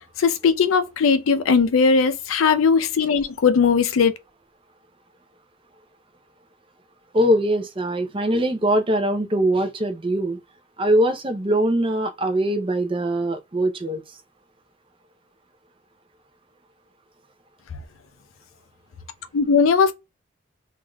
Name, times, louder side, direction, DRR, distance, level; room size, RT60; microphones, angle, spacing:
voice 1, 0.2-4.1 19.3-19.9, left 5 dB, 90° left, 0.4 m, -18 dB
voice 2, 7.1-10.4 10.8-14.0, right 1 dB, 25° right, 0.5 m, -22 dB
3.3 x 2.5 x 2.2 m
head